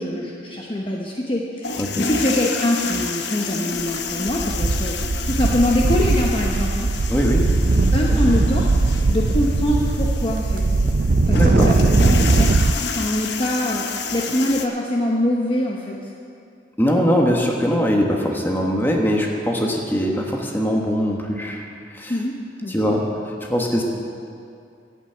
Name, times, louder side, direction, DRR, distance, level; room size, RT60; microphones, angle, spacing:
voice 1, 0.0-5.0 5.2-6.9 7.9-10.8 11.3-12.6 12.9-16.1 22.1-22.3 22.6-23.0, left 1 dB, 30° left, -2 dB, 0.9 m, -24 dB
sound 1, 1.6-14.7, left 5 dB, 75° left, 0.9 m, -30 dB
sound 2, 3.8-4.0 4.3-12.7, right 3 dB, 50° right, 0.4 m, -19 dB
voice 2, 7.1-7.5 8.1-8.2 11.3-11.7 16.8-21.6 22.0-22.1 22.7-23.0 23.5-23.8, equal, 10° left, 0 dB, 1.3 m, -21 dB
11.0 x 8.5 x 8.0 m, 2.4 s
head